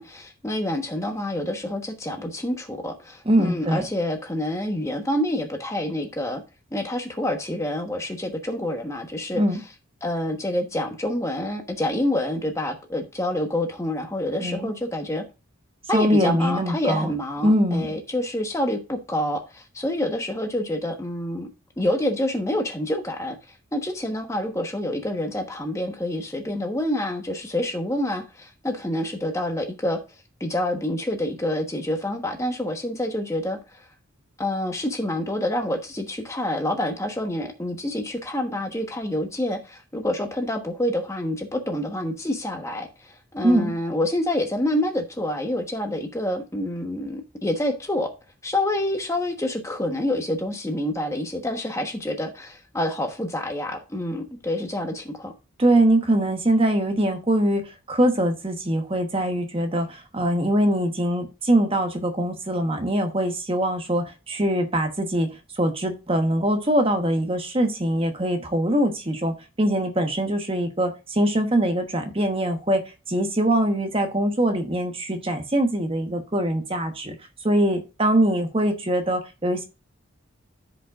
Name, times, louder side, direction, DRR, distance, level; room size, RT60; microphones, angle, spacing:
voice 1, 0.0-6.4 6.7-9.4 10.0-15.2 15.9-21.5 21.8-23.4 23.7-30.0 30.4-33.9 34.4-48.1 48.4-55.3, left 1 dB, 15° left, 1.1 m, -27 dB
voice 2, 3.3-3.9 9.3-9.6 14.4-14.7 15.9-17.1 17.4-17.9 43.4-43.7 55.6-72.8 73.1-77.1 77.4-79.7, right 1 dB, 25° right, 1.1 m, -23 dB
14.0 x 5.2 x 2.4 m
head